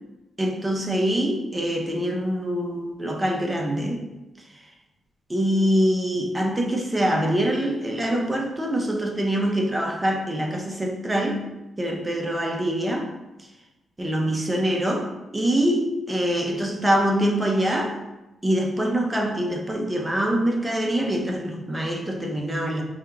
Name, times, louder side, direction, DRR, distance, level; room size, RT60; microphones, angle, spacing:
voice 1, 0.4-4.0 4.5-4.6 5.3-11.4 11.8-13.1 14.0-18.0 18.4-22.8, equal, 20° right, 2 dB, 0.7 m, -24 dB
5.2 x 2.8 x 2.3 m, 1.0 s
cardioid pair, 70°, 0 cm